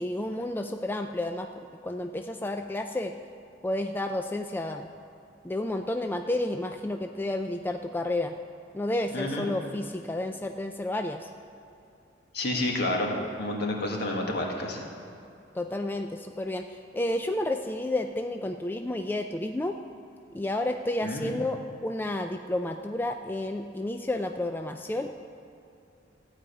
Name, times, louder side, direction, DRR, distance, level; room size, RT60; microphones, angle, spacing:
voice 1, 0.0-3.1 3.6-4.9 5.4-8.3 8.7-11.3 15.6-19.8 20.3-25.2, left 1 dB, 10° left, 5 dB, 0.3 m, -31 dB
voice 2, 9.1-9.5 12.3-14.8 21.0-21.4, left 1 dB, 60° left, 0 dB, 1.7 m, -30 dB
14.5 x 4.9 x 8.4 m, 2.7 s
head